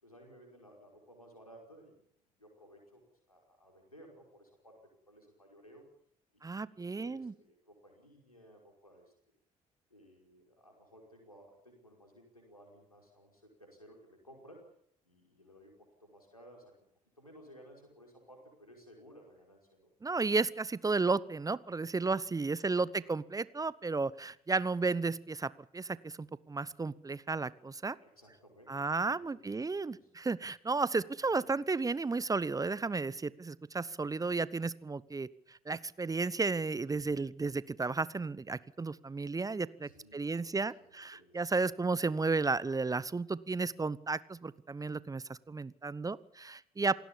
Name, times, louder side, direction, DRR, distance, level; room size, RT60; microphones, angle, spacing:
voice 1, 0.0-5.8 6.3-9.1 9.9-14.6 15.0-16.9 17.2-19.9 22.7-23.1 28.0-30.1 39.8-41.4, equal, 90° left, 1 dB, 5.2 m, -58 dB
voice 2, 6.4-7.3 20.0-28.0 28.7-46.9, right 3 dB, 20° right, 20 dB, 0.9 m, -33 dB
28.0 x 17.5 x 7.3 m, 0.66 s
figure-of-eight pair, 50°, 18 cm